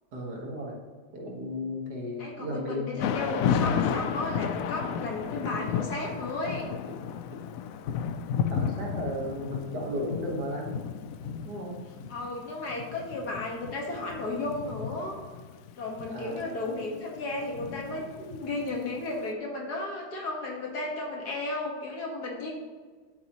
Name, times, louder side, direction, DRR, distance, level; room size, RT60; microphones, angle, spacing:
voice 1, 0.1-0.8 1.1-3.1 8.5-10.7 11.4-11.8 16.1-16.5, left 1 dB, 60° right, -1 dB, 2.1 m, -34 dB
voice 2, 2.2-6.7 12.1-15.2 15.8-22.5, left 2 dB, 60° left, -1 dB, 2.2 m, -34 dB
Thunder / Rain, 3.0-19.0, left 7 dB, 85° left, 0.7 m, -33 dB
11.0 x 8.1 x 3.0 m, 1.5 s
omnidirectional pair, 2.0 m